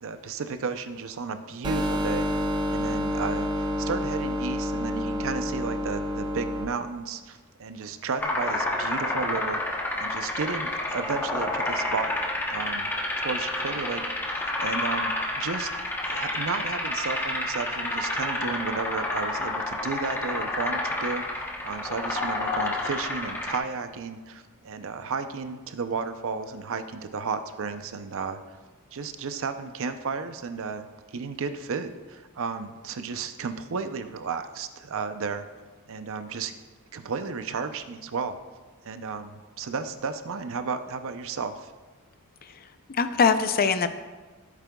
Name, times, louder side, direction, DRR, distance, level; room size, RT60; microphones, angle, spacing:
voice 1, 0.0-2.3 2.7-12.1 12.5-12.9 13.2-14.0 14.3-15.7 16.1-28.4 28.9-30.9 31.1-35.4 35.9-36.5 36.9-38.3 38.8-41.7, right 5 dB, 65° right, 9 dB, 0.6 m, -33 dB
sound 1, 1.6-6.6, left 1 dB, 20° right, 0.7 m, -28 dB
sound 2, 8.2-23.6, left 2 dB, 10° left, 0.9 m, -29 dB
voice 2, 42.4-43.9, left 5 dB, 45° left, 10 dB, 0.5 m, -23 dB
14.5 x 8.2 x 2.3 m, 1.3 s
head